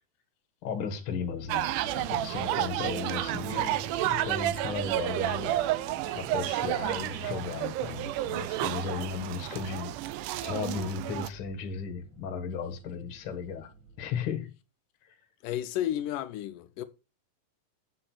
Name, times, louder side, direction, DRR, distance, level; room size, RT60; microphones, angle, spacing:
voice 1, 0.6-5.5 6.1-10.0 10.4-13.7 14.0-14.5 15.1-15.2, left 6 dB, 55° left, 1.9 m, -35 dB
sound 1, 1.2-14.2, right 3 dB, 60° right, 3.3 m, -47 dB
sound 2, 1.5-11.3, right 14 dB, 80° right, 2.1 m, -31 dB
voice 2, 15.4-16.8, left 12 dB, 85° left, 2.3 m, -32 dB
8.8 x 6.5 x 4.4 m
omnidirectional pair, 3.7 m